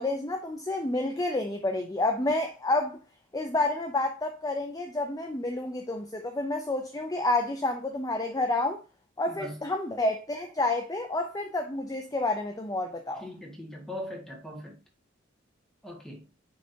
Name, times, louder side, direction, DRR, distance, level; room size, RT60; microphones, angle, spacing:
voice 1, 0.0-3.0 3.3-8.8 9.2-13.3, left 2 dB, 20° left, 0.6 m, -29 dB
voice 2, 9.3-9.6 13.2-14.8 15.8-16.2, equal, 5° left, 1.9 m, -40 dB
9.7 x 3.7 x 2.8 m
head